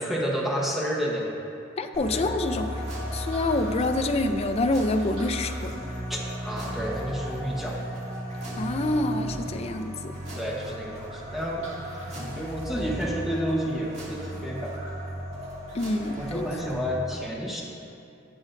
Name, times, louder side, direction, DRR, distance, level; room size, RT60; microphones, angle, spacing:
voice 1, 0.0-1.4 2.1-2.2 6.1-6.2 6.4-7.8 10.4-11.7 12.2-14.7 16.2-17.6, equal, ahead, -4 dB, 1.2 m, -30 dB
voice 2, 1.8-2.8 3.1-5.8 8.6-10.1 15.7-16.5, left 2 dB, 30° left, 7 dB, 0.4 m, -27 dB
sound 1, 1.9-16.7, equal, 35° right, 2.0 m, -35 dB
18.5 x 6.2 x 2.6 m, 2.6 s
head